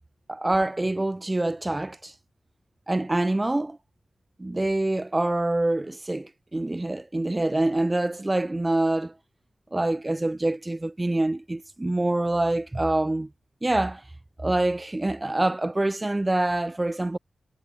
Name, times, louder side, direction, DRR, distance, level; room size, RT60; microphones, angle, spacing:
voice 1, 0.3-2.1 2.9-3.8 4.4-9.1 9.7-13.3 13.6-14.0 14.4-17.2, right 2 dB, 15° right, 2.1 m, -25 dB
wide cardioid pair, 175°, 0 cm